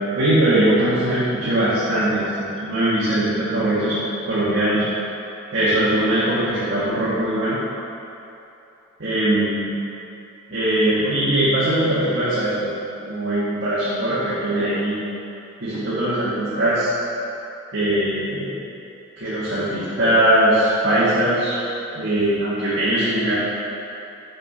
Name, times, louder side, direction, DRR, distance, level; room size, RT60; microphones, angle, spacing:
voice 1, 0.1-4.0 4.2-4.8 5.5-7.6 9.0-9.7 10.5-12.7 13.0-15.0 15.6-16.9 17.7-18.5 19.2-21.6 21.9-23.4, right 1 dB, 70° right, -11 dB, 1.5 m, -20 dB
6.4 x 5.2 x 4.2 m, 2.9 s
head